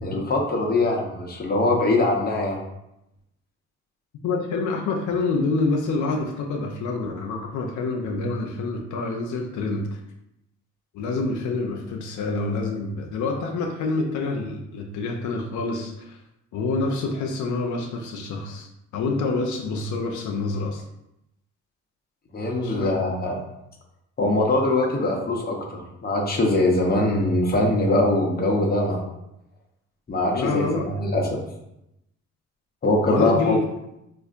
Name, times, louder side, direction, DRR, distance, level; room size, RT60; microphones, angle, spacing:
voice 1, 0.0-2.6 22.3-23.3 24.2-29.1 30.1-31.4 32.8-33.6, left 2 dB, 30° left, 0 dB, 0.8 m, -22 dB
voice 2, 4.2-10.0 10.9-16.2 16.5-20.8 22.6-22.9 30.3-30.9 33.1-33.6, left 3 dB, 75° left, 1 dB, 0.6 m, -27 dB
4.1 x 2.5 x 2.5 m, 0.85 s
cardioid pair, 90°, 30 cm